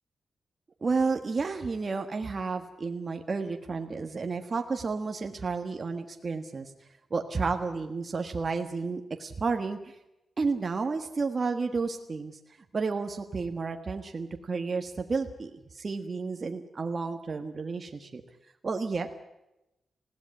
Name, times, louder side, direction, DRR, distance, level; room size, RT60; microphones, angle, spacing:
voice 1, 0.8-6.7 7.1-10.0 10.4-12.4 12.7-18.2 18.6-19.1, right 4 dB, 40° right, 5 dB, 1.5 m, -31 dB
20.5 x 16.5 x 9.7 m, 0.92 s
wide cardioid pair, 110°, 0 cm